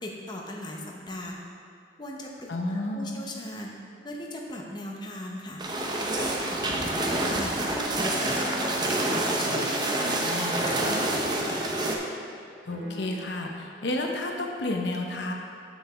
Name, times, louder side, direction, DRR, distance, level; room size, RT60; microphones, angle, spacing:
voice 1, 0.0-1.4 2.0-3.7 4.0-5.6 6.2-8.7 9.1-11.7, left 1 dB, 25° left, -1 dB, 0.7 m, -38 dB
voice 2, 2.5-3.2 10.0-10.5 12.6-15.3, left 2 dB, 75° left, 2 dB, 0.7 m, -31 dB
sound 1, 5.6-12.0, right 1 dB, 25° right, 0.7 m, -27 dB
sound 2, 8.1-10.2 10.5-11.5 11.8-11.9 12.7-13.5, equal, 5° left, 1.5 m, -39 dB
7.3 x 7.1 x 3.5 m, 2.4 s
head